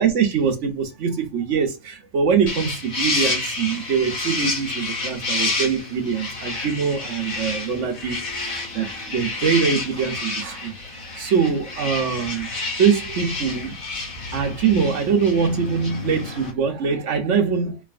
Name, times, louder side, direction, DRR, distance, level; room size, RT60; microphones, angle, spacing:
voice 1, 0.0-10.7 11.2-12.5 12.8-13.8 14.3-17.8, right 6 dB, 60° right, 1.0 m, -23 dB
sound 1, 2.5-16.5, left 3 dB, 70° left, 1.8 m, -29 dB
4.0 x 3.2 x 2.4 m
omnidirectional pair, 1.5 m